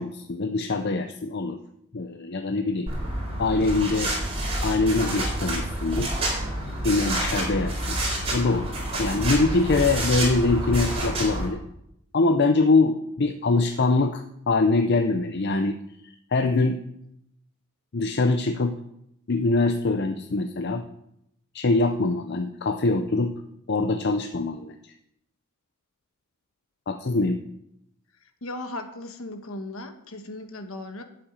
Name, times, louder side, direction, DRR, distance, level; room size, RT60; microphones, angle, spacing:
voice 1, 0.0-1.6 1.9-2.9 3.4-4.1 4.6-6.1 6.8-8.0 8.3-8.7 9.0-11.6 12.1-15.8 16.0-16.8 17.9-18.8 19.3-20.8 21.5-23.3 23.7-24.9 26.9-27.4, left 3 dB, 50° left, 7 dB, 0.6 m, -23 dB
sound 1, 2.9-11.5, right 1 dB, 25° right, 4.5 m, -28 dB
voice 2, 28.4-31.0, left 2 dB, 65° left, 7 dB, 1.3 m, -37 dB
8.7 x 7.5 x 8.8 m, 0.79 s
head